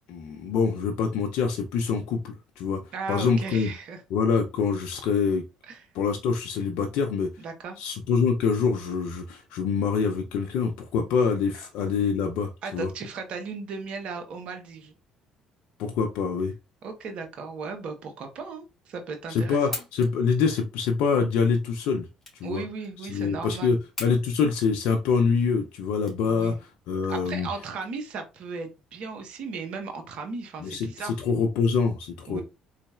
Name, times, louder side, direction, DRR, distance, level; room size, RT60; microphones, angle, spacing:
voice 1, 0.1-3.7 4.1-5.4 5.9-7.3 7.8-12.9 15.8-16.5 19.3-22.1 22.4-22.6 23.0-26.5 26.9-27.5 30.6-32.4, left 5 dB, 70° left, 4 dB, 0.5 m, -25 dB
voice 2, 2.9-4.0 5.6-5.8 7.4-7.8 11.5-11.6 12.6-14.9 16.8-19.8 22.4-23.8 26.2-26.6 27.1-31.2 32.3-32.4, right 4 dB, 60° right, 6 dB, 1.1 m, -36 dB
sound 1, 19.7-26.8, left 2 dB, 20° left, 2.0 m, -42 dB
4.0 x 3.2 x 2.4 m, 0.27 s
hypercardioid pair, 60°, 2 cm